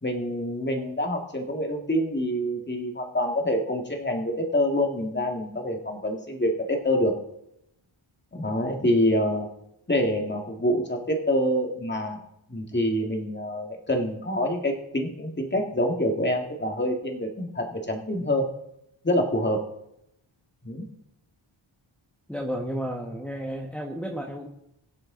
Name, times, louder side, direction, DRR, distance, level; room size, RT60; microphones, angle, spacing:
voice 1, 0.0-7.1 8.3-9.5 9.9-12.2 12.5-18.5 19.0-19.7 20.6-20.9, equal, 20° left, 2 dB, 2.0 m, -26 dB
voice 2, 22.3-24.5, equal, ahead, 0 dB, 1.4 m, -32 dB
22.0 x 7.7 x 3.9 m, 0.80 s
wide cardioid pair, 95°, 50 cm